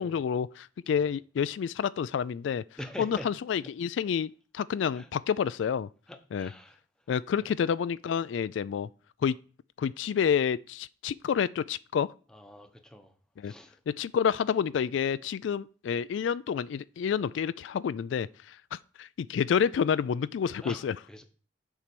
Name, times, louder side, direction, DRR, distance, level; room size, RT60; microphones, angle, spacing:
voice 1, 0.0-2.6 3.0-5.9 6.3-6.5 7.1-8.9 9.2-9.4 9.8-12.1 13.4-13.5 13.9-21.0, left 7 dB, 80° left, 0.3 m, -29 dB
voice 2, 2.8-3.3 4.9-5.1 6.1-6.8 12.3-13.1 13.4-13.8 20.6-21.2, equal, 5° left, 0.9 m, -44 dB
7.2 x 4.5 x 6.8 m
head